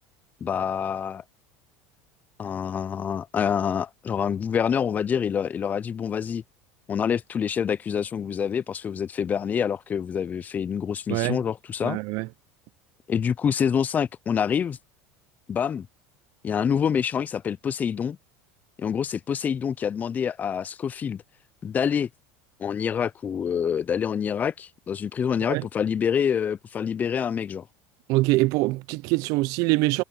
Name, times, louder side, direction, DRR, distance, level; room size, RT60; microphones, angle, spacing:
voice 1, 0.4-1.2 2.4-6.4 6.9-12.0 13.1-14.8 15.5-15.9 16.4-18.2 18.8-21.2 21.6-22.1 22.6-27.7, left 7 dB, 25° left, 0.3 m, -26 dB
voice 2, 11.8-12.3 25.5-25.7 28.1-30.0, right 21 dB, 60° right, 0.6 m, -24 dB
supercardioid pair, 120°, 7 cm